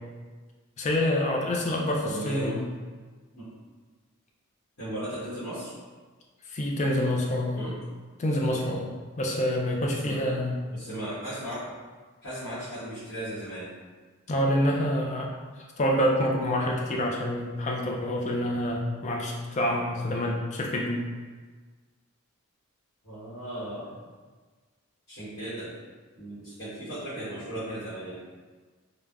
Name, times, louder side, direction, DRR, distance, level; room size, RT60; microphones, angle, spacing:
voice 1, 0.8-2.7 6.5-7.7 8.2-8.9 9.2-10.6 14.3-15.3 15.6-21.0, left 1 dB, 35° left, 0 dB, 0.3 m, -27 dB
voice 2, 2.0-2.6 3.3-3.5 4.8-5.7 7.5-7.7 10.0-10.4 10.7-11.7 12.2-13.7 23.0-23.9 25.1-25.7 26.2-28.1, right 1 dB, 90° left, -13 dB, 1.2 m, -36 dB
3.3 x 2.0 x 2.3 m, 1.4 s
head